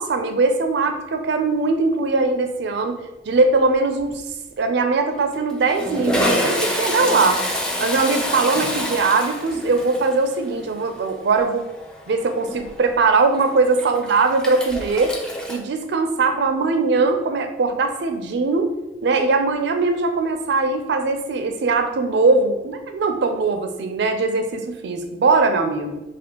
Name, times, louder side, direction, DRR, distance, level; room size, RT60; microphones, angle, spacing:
voice 1, 0.0-3.0 3.3-4.2 4.6-7.4 7.8-11.6 12.1-15.1 15.5-18.7 19.0-26.0, right 3 dB, 65° right, 6 dB, 0.4 m, -20 dB
Toilet flush, 3.3-3.7 4.0-4.1 5.1-15.6, equal, 5° left, 0.4 m, -27 dB
4.2 x 2.5 x 2.8 m, 1.0 s
head